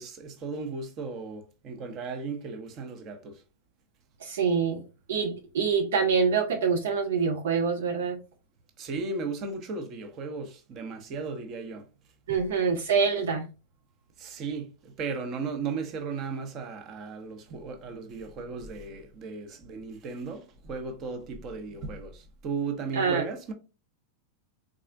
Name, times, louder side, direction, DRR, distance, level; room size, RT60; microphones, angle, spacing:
voice 1, 0.0-3.4 8.8-11.9 12.3-12.4 14.2-23.5, right 4 dB, 35° right, 0.9 m, -36 dB
voice 2, 4.2-4.8 5.1-8.2 12.3-13.5 22.9-23.2, right 5 dB, 60° right, 0.5 m, -25 dB
4.1 x 3.7 x 2.5 m
figure-of-eight pair, 90°, 0 cm